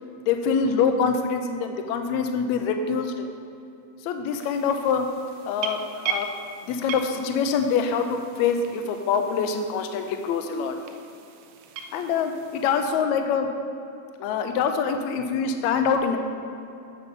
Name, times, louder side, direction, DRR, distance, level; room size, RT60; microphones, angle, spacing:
voice 1, 0.3-3.3 4.0-5.1 5.4-6.3 6.6-10.8 11.9-13.5 14.2-16.2, left 6 dB, 80° left, 6 dB, 1.7 m, -25 dB
sound 1, 4.3-12.9, right 6 dB, 80° right, 1.7 m, -38 dB
8.3 x 6.7 x 5.3 m, 2.7 s
omnidirectional pair, 3.8 m